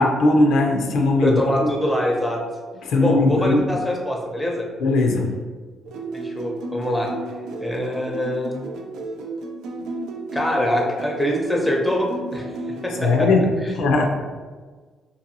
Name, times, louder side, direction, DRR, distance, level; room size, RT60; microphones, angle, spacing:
voice 1, 0.0-1.7 2.8-3.7 4.8-5.4 13.0-14.1, left 2 dB, 80° left, 2 dB, 0.4 m, -19 dB
voice 2, 1.2-2.4 3.0-4.7 6.1-7.1 7.6-8.7 10.3-12.5 12.8-13.3 13.6-13.8, equal, 5° left, 0 dB, 0.6 m, -24 dB
sound 1, 5.9-13.2, right 2 dB, 85° right, 0.3 m, -33 dB
2.7 x 2.6 x 2.6 m, 1.4 s
cardioid pair, 90°, 0 cm